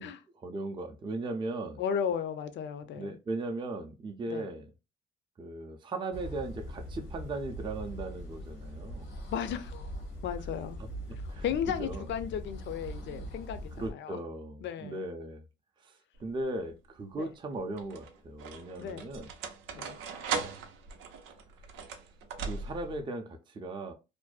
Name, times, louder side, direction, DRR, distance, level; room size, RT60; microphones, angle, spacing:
voice 1, 0.0-1.8 2.8-4.7 5.4-9.1 10.8-12.1 13.0-13.3 13.8-15.4 15.8-19.3 21.7-21.8 22.4-23.9, right 2 dB, 25° right, 0.4 m, -38 dB
voice 2, 1.8-3.2 4.3-4.5 9.3-9.9 10.2-10.8 11.4-14.2 14.6-15.0 17.2-17.3 18.8-19.1 19.7-20.0, left 8 dB, 70° left, 0.4 m, -35 dB
sound 1, 6.1-13.9, equal, 85° left, 0.8 m, -41 dB
sound 2, 16.2-16.7 17.5-23.0, right 5 dB, 85° right, 0.5 m, -39 dB
2.5 x 2.1 x 2.3 m
cardioid pair, 90°, 20 cm